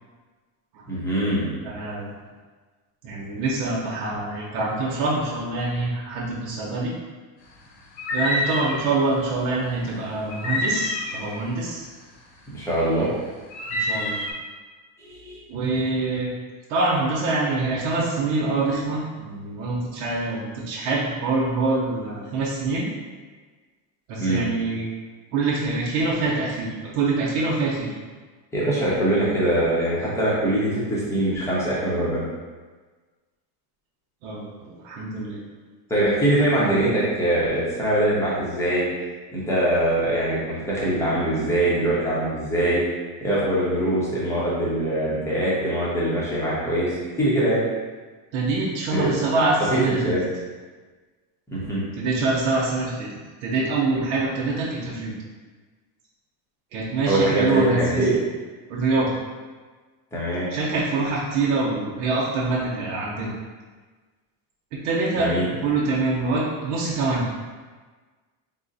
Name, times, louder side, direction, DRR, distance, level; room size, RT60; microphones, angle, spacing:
voice 1, 0.9-1.5 12.5-13.1 15.0-15.4 24.2-24.4 28.5-32.3 35.9-38.9 39.3-42.8 43.2-46.9 47.2-47.6 48.9-49.1 49.7-50.2 51.5-51.8 57.1-58.2 60.1-60.5 65.2-65.5, right 1 dB, 5° left, -8 dB, 0.7 m, -23 dB
voice 2, 1.6-2.1 3.0-6.9 8.1-11.8 13.7-14.2 15.5-16.3 16.7-22.9 24.1-24.9 25.3-27.9 34.2-35.4 48.3-50.1 52.0-53.1 53.4-55.1 56.7-58.1 58.7-59.1 60.5-63.3 64.7-67.3, right 3 dB, 85° right, -5 dB, 0.9 m, -25 dB
sound 1, 8.0-8.9 10.3-11.4 13.5-14.3, left 1 dB, 70° left, 1.1 m, -27 dB
3.7 x 2.1 x 3.9 m, 1.4 s
cardioid pair, 160°, 49 cm